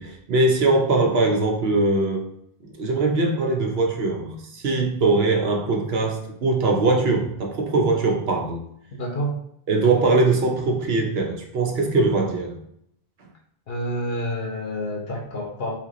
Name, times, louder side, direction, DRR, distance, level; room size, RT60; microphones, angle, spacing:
voice 1, 0.0-2.3 2.8-8.6 9.7-12.5, right 3 dB, 75° right, 1 dB, 1.0 m, -21 dB
voice 2, 8.9-9.3 13.7-15.8, equal, 70° left, 0 dB, 1.0 m, -28 dB
3.4 x 2.9 x 3.8 m, 0.72 s
omnidirectional pair, 1.0 m